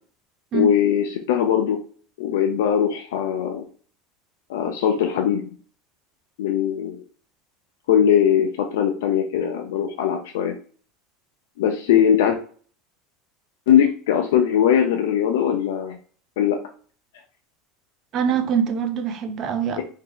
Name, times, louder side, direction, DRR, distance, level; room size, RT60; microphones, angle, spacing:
voice 1, 0.5-1.8 2.2-3.6 4.5-5.4 6.4-7.0 7.9-10.6 11.6-12.4 13.7-16.0 16.4-16.6 19.8-19.9, left 9 dB, 85° left, 3 dB, 0.5 m, -20 dB
voice 2, 18.1-19.8, right 7 dB, 45° right, 9 dB, 0.6 m, -23 dB
2.8 x 2.7 x 3.8 m, 0.43 s
supercardioid pair, 115°, 0 cm